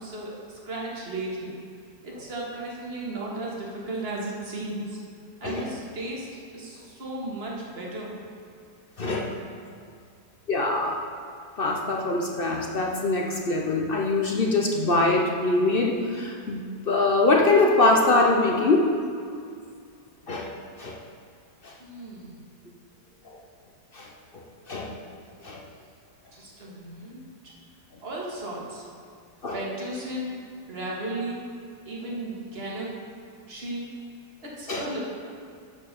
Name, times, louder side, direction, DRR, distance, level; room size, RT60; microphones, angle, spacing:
voice 1, 0.0-1.5 2.0-5.0 5.4-8.2 21.8-22.5 26.3-27.3 28.0-28.9 29.5-31.4 31.9-33.0 33.5-33.9 34.4-35.0, right 1 dB, 40° right, -4 dB, 1.9 m, -35 dB
voice 2, 9.0-9.4 10.5-11.0 11.6-19.0 20.3-20.5 20.8-21.0 21.6-21.7 23.2-23.4 23.9-25.6 29.4-29.6 34.7-34.8, left 2 dB, 50° left, 0 dB, 0.7 m, -24 dB
11.5 x 4.6 x 6.7 m, 2.3 s
omnidirectional pair, 1.8 m